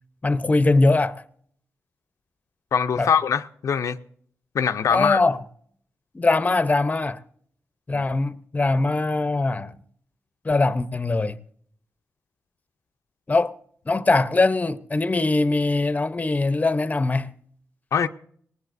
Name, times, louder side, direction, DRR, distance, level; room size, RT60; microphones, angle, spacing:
voice 1, 0.2-1.2 3.0-3.1 4.9-5.4 6.1-7.2 7.9-9.7 10.4-11.4 13.3-13.5 13.9-17.3, left 3 dB, 30° left, 0.7 m, -21 dB
voice 2, 2.7-4.0 4.5-5.2 7.9-8.1 17.9-18.1, left 7 dB, 80° left, 0.5 m, -22 dB
19.5 x 19.0 x 2.6 m
cardioid pair, 65°, 5 cm